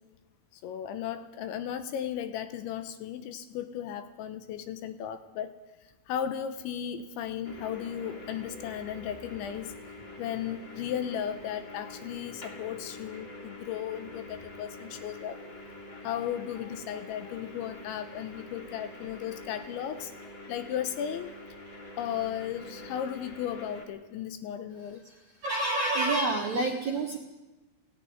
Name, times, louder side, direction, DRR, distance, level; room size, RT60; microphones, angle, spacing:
voice 1, 0.6-5.6 6.1-9.8 10.2-15.4 16.0-20.1 20.5-21.3 22.0-25.0, left 9 dB, 75° left, 10 dB, 3.1 m, -35 dB
sound 1, 7.4-23.9, left 1 dB, 30° left, 2.7 m, -46 dB
voice 2, 25.4-27.2, right 2 dB, 60° right, -1 dB, 1.9 m, -27 dB
17.0 x 17.0 x 9.6 m, 1.1 s
omnidirectional pair, 5.7 m